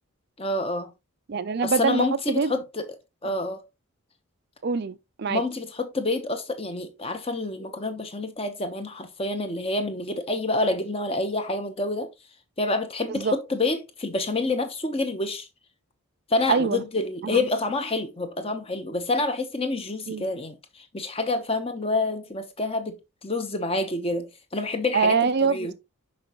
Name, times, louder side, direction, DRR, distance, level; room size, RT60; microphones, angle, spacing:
voice 1, 0.4-0.9 1.6-2.9 3.2-3.6 5.3-12.1 12.6-15.5 16.3-23.0 23.2-25.7, left 2 dB, 25° left, 0.9 m, -28 dB
voice 2, 1.3-2.5 3.2-3.3 4.6-5.4 13.1-13.3 16.5-16.8 17.2-17.4 20.1-20.3 24.9-25.7, right 5 dB, 45° right, 0.4 m, -24 dB
6.0 x 5.5 x 3.0 m
head